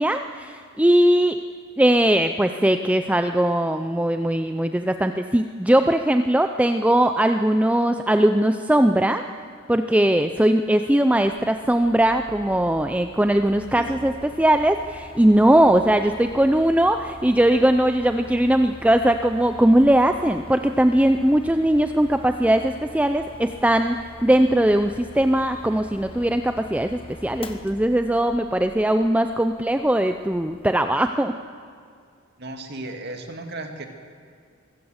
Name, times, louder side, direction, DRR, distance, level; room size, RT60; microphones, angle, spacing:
voice 1, 0.0-1.4 1.8-9.2 9.7-31.4, right 1 dB, 5° right, 8 dB, 0.5 m, -20 dB
Mechanical fan, 11.1-30.8, left 1 dB, 25° left, 1.2 m, -44 dB
voice 2, 32.4-33.9, right 2 dB, 50° right, 5 dB, 2.2 m, -35 dB
23.5 x 15.0 x 8.0 m, 2.2 s
head